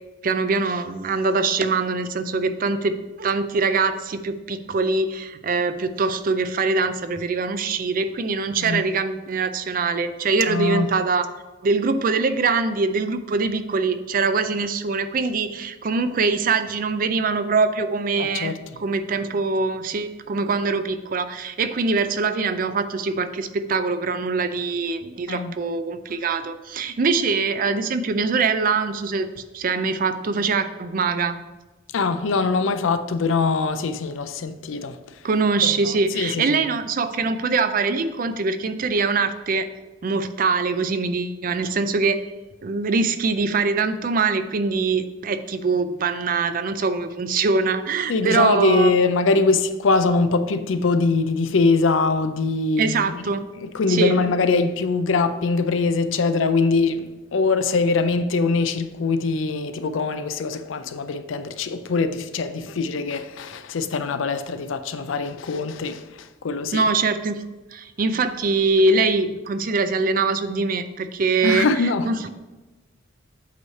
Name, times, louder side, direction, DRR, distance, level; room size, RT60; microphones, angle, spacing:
voice 1, 0.2-11.3 11.6-18.5 18.8-29.3 29.5-31.4 35.2-39.7 40.0-42.2 42.6-49.0 52.8-53.4 53.9-54.2 66.7-67.4 67.7-71.7 72.0-72.3, right 4 dB, 45° right, 0.4 m, -23 dB
voice 2, 10.5-10.9 18.2-18.6 25.3-25.5 31.9-35.0 35.6-36.6 48.1-53.2 53.6-66.9 71.4-72.1, left 4 dB, 90° left, 0.5 m, -22 dB
8.1 x 3.2 x 5.6 m
head